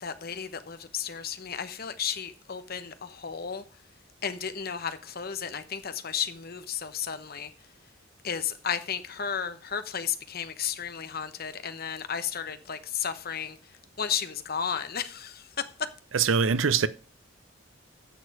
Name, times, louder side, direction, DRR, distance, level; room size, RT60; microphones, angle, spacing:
voice 1, 0.0-3.6 4.2-7.5 8.2-13.6 14.0-15.4, left 7 dB, 50° left, 1.0 m, -33 dB
voice 2, 16.1-16.9, right 6 dB, 85° right, 0.7 m, -23 dB
10.5 x 6.7 x 4.8 m
head